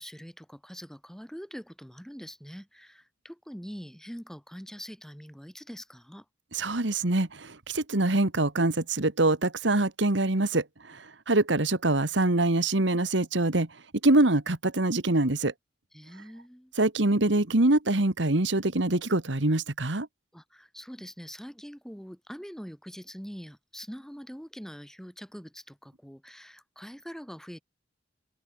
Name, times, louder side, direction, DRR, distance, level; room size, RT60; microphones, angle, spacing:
voice 1, 0.0-6.2 15.9-16.7 20.3-27.6, equal, 5° left, 4.9 m, -44 dB
voice 2, 6.5-13.7 14.0-15.5 16.8-20.1, right 2 dB, 70° right, 1.8 m, -24 dB
head